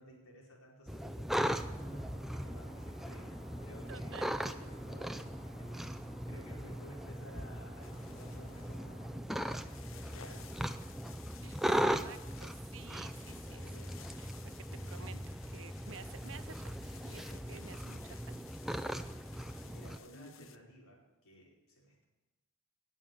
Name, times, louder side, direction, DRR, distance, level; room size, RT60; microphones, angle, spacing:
voice 1, 0.0-4.2 4.5-10.9 13.3-14.0 14.6-15.2 19.6-22.0, equal, 85° left, -2 dB, 4.7 m, -56 dB
sound 1, 0.9-20.0, equal, ahead, 0.4 m, -39 dB
sound 2, 1.6-9.1, right 1 dB, 25° left, 4.7 m, -55 dB
voice 2, 3.9-4.3 11.4-13.6 14.2-15.1 15.5-18.6, right 6 dB, 60° right, 12 dB, 0.7 m, -52 dB
sound 3, 7.8-20.6, left 8 dB, 65° left, 0.8 m, -57 dB
19.0 x 7.1 x 6.6 m, 1.1 s
head